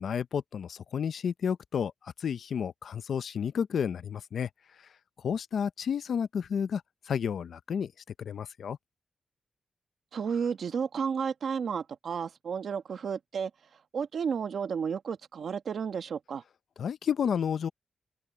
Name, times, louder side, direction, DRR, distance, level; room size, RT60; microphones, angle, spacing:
voice 1, 0.0-4.5 5.2-6.8 7.1-7.9 8.2-8.8 16.8-17.7, left 7 dB, 85° left, 0.6 m, -31 dB
voice 2, 10.1-13.5 13.9-16.4, right 6 dB, 80° right, 1.4 m, -32 dB
open air
wide cardioid pair, 105°, 0 cm